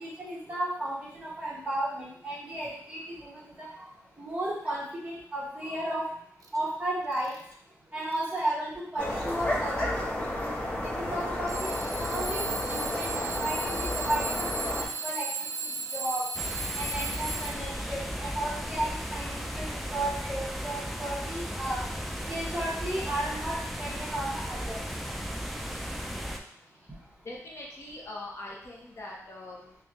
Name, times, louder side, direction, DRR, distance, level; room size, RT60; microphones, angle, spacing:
voice 1, 0.0-3.7 4.2-6.0 6.5-7.3 7.9-9.9 10.8-11.7 12.0-12.4 12.7-14.7 15.0-15.3 15.9-16.2 16.7-21.8 22.3-24.8, right 1 dB, 20° right, -7 dB, 1.3 m, -34 dB
Alarm / Clock, 6.4-6.6 7.1-7.5 8.1-8.5 9.4-9.5 11.5-17.9, right 3 dB, 80° right, 0.4 m, -35 dB
sound 1, 9.0-14.9, left 1 dB, 20° left, 0.9 m, -32 dB
sound 2, 16.4-26.4, equal, ahead, 0.3 m, -35 dB
voice 2, 27.2-29.8, left 2 dB, 50° left, -4 dB, 0.9 m, -42 dB
3.6 x 3.1 x 3.0 m, 0.66 s
wide cardioid pair, 155°, 6 cm